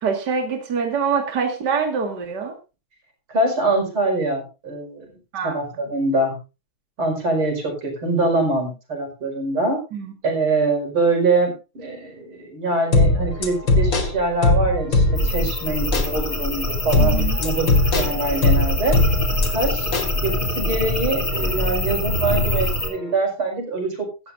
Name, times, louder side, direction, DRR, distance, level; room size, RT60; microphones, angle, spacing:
voice 1, 0.0-2.5 5.3-5.5 9.9-10.1 17.0-17.4, right 6 dB, 55° right, 3 dB, 2.6 m, -24 dB
voice 2, 3.3-5.2 5.4-6.4 7.0-9.8 10.2-19.0 19.5-19.9 20.2-24.3, right 2 dB, 90° right, 3 dB, 6.0 m, -24 dB
sound 1, 12.8-23.1, left 2 dB, 80° left, 5.8 m, -40 dB
sound 2, 12.9-15.5 15.9-16.1 16.9-19.5 19.9-20.1, left 2 dB, 65° left, 3.0 m, -19 dB
sound 3, 15.1-22.9, left 1 dB, 25° left, 3.3 m, -24 dB
16.5 x 14.0 x 2.6 m, 0.30 s
omnidirectional pair, 2.3 m